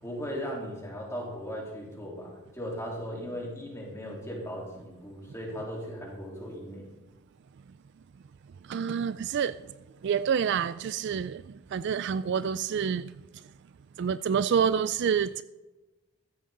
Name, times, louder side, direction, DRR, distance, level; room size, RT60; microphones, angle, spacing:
voice 1, 0.0-6.8, equal, 15° left, 3.6 m, -37 dB
voice 2, 8.7-9.5 10.0-11.4 11.7-13.1 14.0-15.4, right 7 dB, 50° right, 0.3 m, -27 dB
14.5 x 13.0 x 3.9 m
head